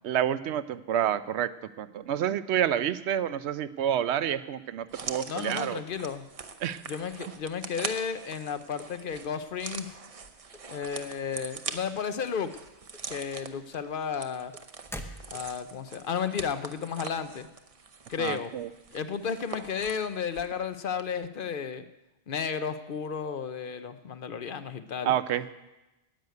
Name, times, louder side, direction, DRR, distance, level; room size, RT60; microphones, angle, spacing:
voice 1, 0.0-1.5 1.8-5.8 6.6-6.8 18.2-18.7 25.0-25.4, right 10 dB, 85° right, 14 dB, 0.9 m, -28 dB
sound 1, 4.9-20.6 20.9-21.0, right 5 dB, 40° right, 0.7 m, -42 dB
voice 2, 5.3-6.2 6.8-9.9 10.7-12.5 13.1-14.5 15.3-17.5 18.1-18.5 18.9-21.8 22.3-25.1, left 6 dB, 55° left, 11 dB, 0.8 m, -33 dB
sound 2, 10.5-11.8 12.1-12.6 12.9-15.7, equal, 5° left, 0.7 m, -44 dB
10.5 x 8.0 x 9.3 m, 1.0 s
omnidirectional pair, 1.1 m